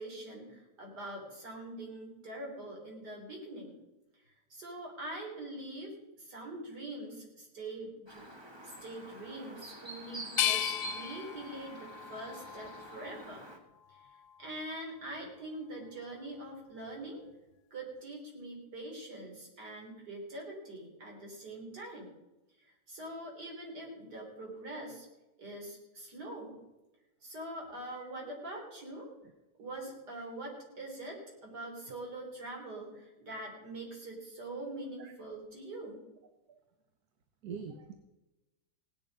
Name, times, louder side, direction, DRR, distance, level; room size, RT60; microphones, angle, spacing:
voice 1, 0.0-3.8 4.5-8.2 8.6-13.4 13.9-14.0 14.4-17.3 17.7-22.1 22.6-25.1 25.4-26.6 27.2-29.1 29.6-36.1, right 1 dB, 90° right, -1 dB, 4.1 m, -44 dB
Chirp tweet, 8.1-13.6, right 2 dB, 15° right, 1.7 m, -46 dB
sound 1, 10.4-13.3 13.8-14.7, left 12 dB, 80° left, 1.1 m, -36 dB
voice 2, 37.4-38.0, right 6 dB, 75° right, 8 dB, 1.4 m, -43 dB
17.0 x 10.5 x 5.3 m, 1.0 s
omnidirectional pair, 1.7 m